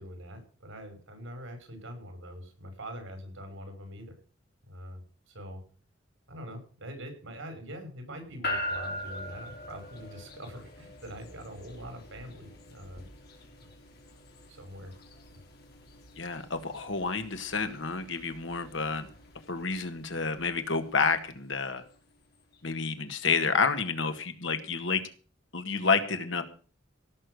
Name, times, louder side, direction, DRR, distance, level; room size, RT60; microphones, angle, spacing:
voice 1, 0.0-4.2 4.7-5.0 5.3-5.6 6.3-13.0 14.5-14.9, equal, 90° right, 6 dB, 5.7 m, -43 dB
sound 1, 8.4-22.7, left 1 dB, 55° left, 3.7 m, -43 dB
voice 2, 16.2-19.1 19.5-21.8 22.6-25.0 25.5-26.4, left 4 dB, 75° left, 8 dB, 1.8 m, -29 dB
17.0 x 6.8 x 7.9 m, 0.41 s
head